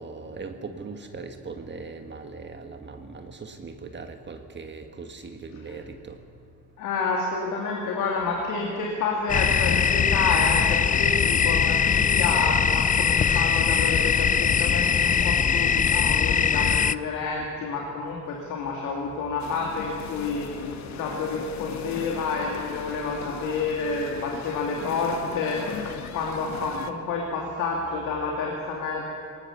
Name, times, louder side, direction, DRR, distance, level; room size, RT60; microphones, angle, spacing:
voice 1, 0.0-6.2 14.9-15.0, right 4 dB, 35° right, 6 dB, 1.5 m, -39 dB
voice 2, 6.8-29.0, left 4 dB, 90° left, -1 dB, 2.7 m, -29 dB
sound 1, 9.3-16.9, left 7 dB, 25° left, 0.4 m, -21 dB
sound 2, 19.4-26.9, left 8 dB, 65° left, 1.4 m, -38 dB
19.0 x 19.0 x 7.2 m, 2.6 s
cardioid pair, 90°, 30 cm